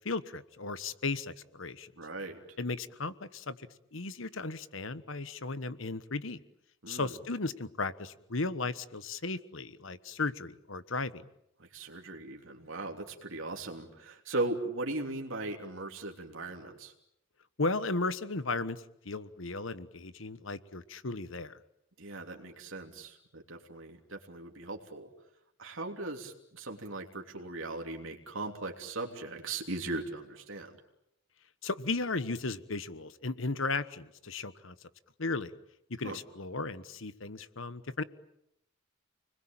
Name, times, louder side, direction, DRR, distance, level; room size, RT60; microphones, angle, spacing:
voice 1, 0.0-1.9 2.6-3.6 3.9-6.4 6.9-11.2 17.6-21.6 31.6-34.7 35.2-35.5 35.9-38.0, left 3 dB, 65° left, 14 dB, 1.3 m, -35 dB
voice 2, 2.0-2.6 6.8-7.2 11.6-16.9 22.0-25.1 25.6-30.7 36.0-36.2, right 2 dB, 65° right, 2 dB, 3.2 m, -38 dB
29.5 x 21.0 x 9.0 m, 0.78 s
head